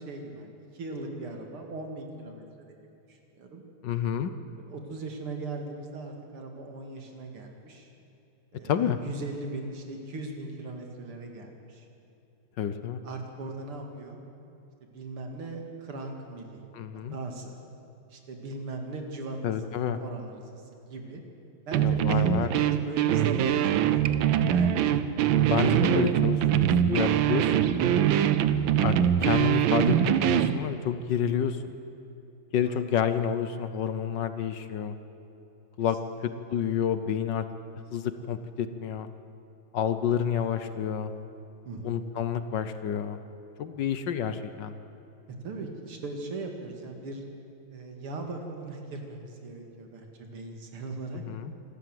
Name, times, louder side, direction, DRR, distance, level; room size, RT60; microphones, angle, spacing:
voice 1, 0.0-2.4 3.1-3.6 4.6-7.9 8.5-11.9 13.0-14.2 14.9-16.6 17.1-17.5 18.1-20.6 20.9-21.2 21.7-25.0 32.6-32.9 35.8-35.9 41.6-42.0 45.4-47.2 47.7-51.2, right 2 dB, 85° right, 3 dB, 3.1 m, -39 dB
voice 2, 3.8-4.3 8.6-9.0 12.6-13.0 16.7-17.2 19.4-20.0 21.8-22.5 25.4-28.1 28.8-29.0 29.2-31.6 32.5-34.9 35.8-36.0 36.2-37.4 37.9-39.1 39.7-41.1 41.8-43.2 43.6-44.7 51.3-51.5, left 8 dB, 65° left, 11 dB, 1.3 m, -29 dB
sound 1, 21.7-30.6, right 10 dB, 70° right, 1.4 m, -23 dB
27.0 x 13.0 x 7.8 m, 2.8 s
omnidirectional pair, 2.3 m